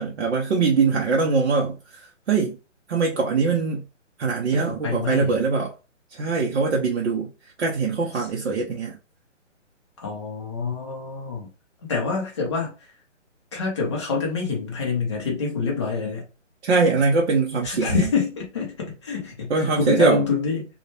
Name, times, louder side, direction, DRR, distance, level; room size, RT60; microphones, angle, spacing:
voice 1, 0.0-2.6 2.9-3.8 4.2-5.7 6.1-9.0 16.6-18.1 19.5-20.2, right 4 dB, 65° right, 0.6 m, -22 dB
voice 2, 4.8-5.4 8.1-8.3 10.0-11.5 11.8-12.9 13.5-16.3 17.6-20.7, left 4 dB, 25° left, 0.5 m, -26 dB
2.1 x 2.1 x 2.8 m
hypercardioid pair, 150°, 37 cm